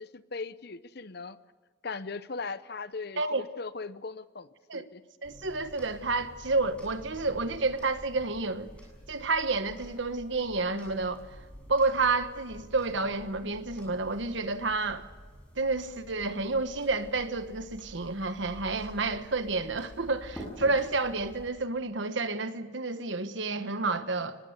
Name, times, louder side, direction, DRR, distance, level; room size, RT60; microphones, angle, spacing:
voice 1, 0.0-1.4 1.8-4.5 4.7-5.0, left 4 dB, 50° left, 0.7 m, -39 dB
sound 1, 5.2-21.5, equal, 5° left, 7.6 m, -48 dB
voice 2, 5.2-8.7 9.1-11.2 11.7-15.1 15.6-24.4, right 3 dB, 65° right, 1.3 m, -30 dB
24.0 x 20.0 x 8.0 m
head